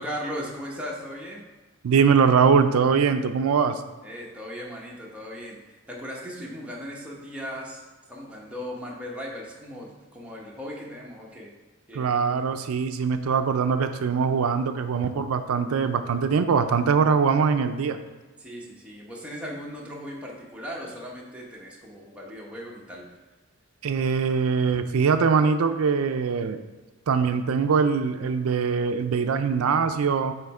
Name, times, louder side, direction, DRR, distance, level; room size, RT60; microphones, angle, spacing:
voice 1, 0.0-1.5 4.0-11.5 11.9-12.4 18.4-23.1, equal, 5° right, -4 dB, 1.0 m, -37 dB
voice 2, 1.8-3.8 11.9-18.0 23.8-26.7 27.1-30.3, right 6 dB, 80° right, 9 dB, 0.4 m, -22 dB
7.6 x 3.1 x 4.8 m, 1.2 s
head